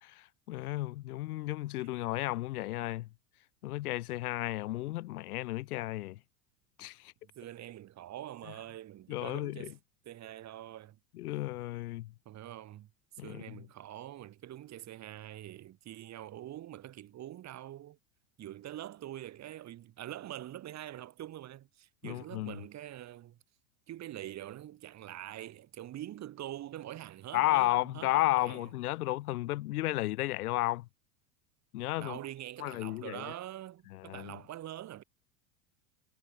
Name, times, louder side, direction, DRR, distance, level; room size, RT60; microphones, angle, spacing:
voice 1, 0.0-3.1 3.6-6.2 6.8-7.1 9.1-9.7 11.1-12.1 13.2-13.6 22.0-22.6 27.3-30.9 31.7-32.2 32.6-33.2 33.9-34.4, left 17 dB, 85° left, 1.3 m, -33 dB
voice 2, 7.3-9.8 10.0-11.0 12.2-12.9 13.2-18.0 18.4-23.4 23.9-28.1 28.4-28.7 32.0-35.0, right 13 dB, 40° right, 3.2 m, -44 dB
supercardioid pair, 115°, 44 cm